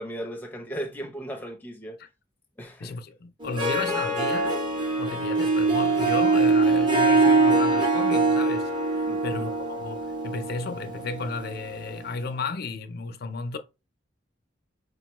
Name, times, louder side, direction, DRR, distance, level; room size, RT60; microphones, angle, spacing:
voice 1, 0.0-2.0 2.6-3.0 9.1-9.5, right 1 dB, 10° left, 0.6 m, -36 dB
voice 2, 2.8-4.5 5.0-13.6, left 4 dB, 50° left, 0.5 m, -34 dB
Harp, 3.4-12.0, right 3 dB, 25° right, 0.8 m, -23 dB
5.0 x 2.2 x 3.0 m
head